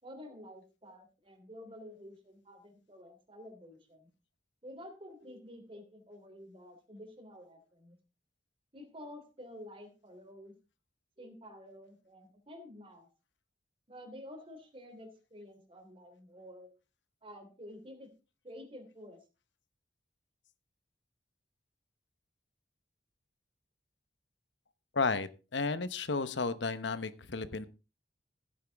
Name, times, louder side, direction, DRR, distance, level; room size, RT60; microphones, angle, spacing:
voice 1, 0.0-4.1 4.6-8.0 8.7-10.5 11.2-13.1 13.9-16.7 17.2-18.1 18.4-19.2, equal, 30° right, 6 dB, 3.1 m, -50 dB
voice 2, 24.9-27.7, left 4 dB, 80° left, 13 dB, 1.0 m, -33 dB
15.5 x 9.2 x 3.5 m, 0.30 s
head